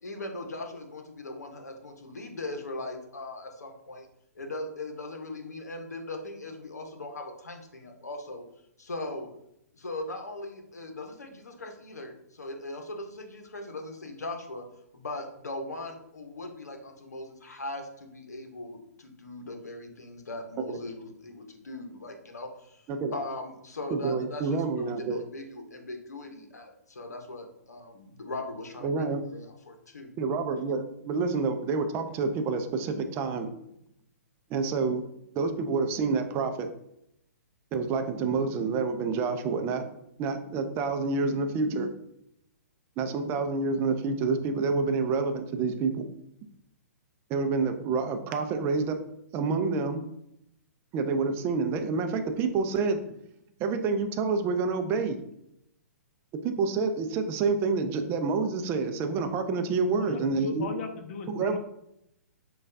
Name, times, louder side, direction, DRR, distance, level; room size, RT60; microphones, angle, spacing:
voice 1, 0.0-4.1 4.3-8.4 8.8-9.3 9.7-14.6 14.9-30.4, left 2 dB, 80° left, 4 dB, 0.8 m, -39 dB
voice 2, 23.9-25.2 28.8-29.2 30.2-33.5 34.5-35.0 35.4-36.7 37.7-39.9 40.2-41.9 43.0-46.1 47.3-49.0 49.3-50.0 50.9-53.2 53.6-55.2 56.4-60.7 61.3-61.6, right 4 dB, 25° right, 7 dB, 0.4 m, -28 dB
voice 3, 59.9-61.6, left 4 dB, 45° left, 6 dB, 0.7 m, -37 dB
6.2 x 2.3 x 2.6 m, 0.79 s
figure-of-eight pair, 120°, 9 cm